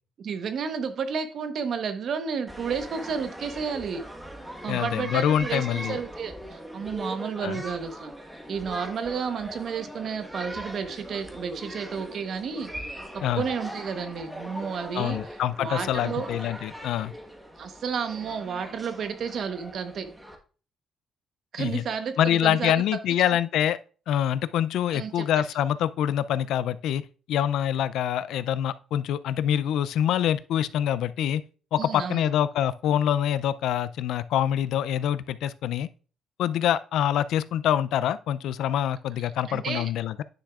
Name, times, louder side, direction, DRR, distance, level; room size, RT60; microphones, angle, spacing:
voice 1, 0.2-4.0 4.6-8.1 8.5-12.7 13.3-15.2 15.6-16.3 17.6-20.1 21.5-22.8 24.9-25.3 31.8-32.2 39.5-39.9, right 6 dB, 60° right, 1.0 m, -31 dB
sound 1, 2.5-20.4, equal, 10° right, 1.3 m, -40 dB
voice 2, 4.7-6.0 7.4-7.6 13.2-13.4 14.9-17.1 21.6-21.8 22.2-23.8 24.1-27.0 27.3-31.4 31.7-35.9 36.4-40.2, left 10 dB, 80° left, 0.3 m, -25 dB
9.8 x 6.3 x 2.4 m
cardioid pair, 90°, 0 cm